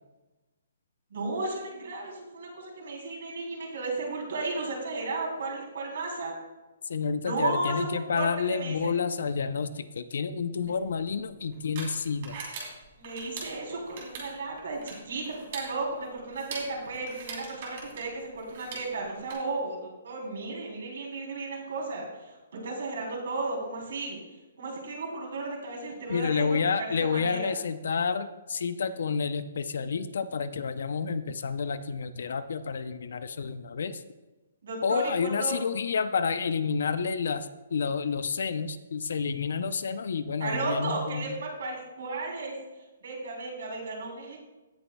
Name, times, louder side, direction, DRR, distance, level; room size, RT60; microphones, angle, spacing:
voice 1, 1.1-6.4 7.2-8.9 10.6-10.7 13.0-24.2 24.6-26.6 27.0-27.5 34.6-35.6 40.4-42.5 43.0-44.4, right 3 dB, 60° right, -2 dB, 3.5 m, -34 dB
voice 2, 6.8-12.4 26.1-34.0 34.8-41.4, left 5 dB, 65° left, 12 dB, 0.6 m, -29 dB
sound 1, 10.6-19.3, right 4 dB, 35° right, 2.7 m, -43 dB
17.0 x 7.0 x 2.3 m, 1.1 s
hypercardioid pair, 175°, 0 cm